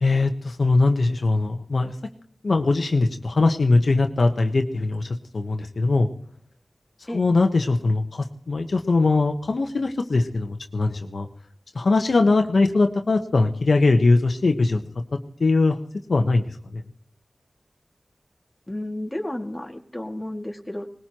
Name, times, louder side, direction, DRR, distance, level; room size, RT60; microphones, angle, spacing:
voice 1, 0.0-1.9 2.4-5.1 5.3-6.1 7.1-11.3 11.7-14.8 15.4-15.8 16.1-16.8, left 3 dB, 75° left, 4 dB, 1.1 m, -21 dB
voice 2, 18.7-20.9, left 1 dB, 20° left, 2 dB, 2.2 m, -32 dB
20.5 x 20.0 x 3.0 m, 0.64 s
cardioid pair, 45°, 0 cm